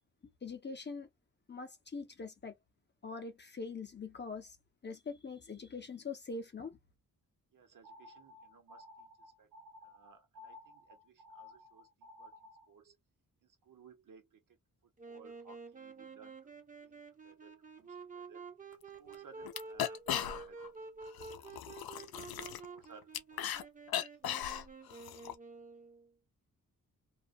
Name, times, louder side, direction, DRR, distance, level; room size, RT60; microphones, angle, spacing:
voice 1, 0.4-1.1 1.5-2.6 3.0-4.6 4.8-6.8, left 4 dB, 30° left, 0.5 m, -43 dB
voice 2, 7.5-9.5 9.8-13.0 13.4-14.6 14.8-16.5 16.8-18.5 19.0-20.7 20.9-23.4 23.8-23.9 24.1-24.2, right 5 dB, 65° right, 0.9 m, -61 dB
sound 1, 7.8-12.7, left 2 dB, 85° right, 0.7 m, -55 dB
Wind instrument woodwind instrument, 15.0-26.1, right 4 dB, 25° right, 0.6 m, -50 dB
sound 2, 18.7-18.8 19.1-19.2 19.4-20.7 21.0-23.6 23.9-25.3, left 11 dB, 90° left, 0.5 m, -38 dB
2.3 x 2.1 x 2.6 m
wide cardioid pair, 175°, 35 cm